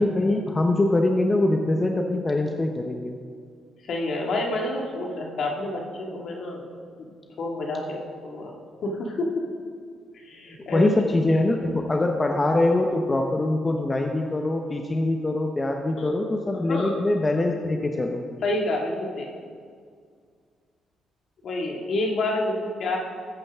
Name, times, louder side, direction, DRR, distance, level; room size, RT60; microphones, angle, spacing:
voice 1, 0.0-3.2 10.6-18.2, left 2 dB, 25° left, 3 dB, 0.8 m, -23 dB
voice 2, 3.9-6.7 7.0-8.5 8.8-9.4 10.1-10.9 16.0-16.1 16.5-17.0 18.4-19.3 21.4-23.0, left 2 dB, 60° left, 0 dB, 1.9 m, -28 dB
14.0 x 8.9 x 3.6 m, 2.1 s
cardioid pair, 90°, 0 cm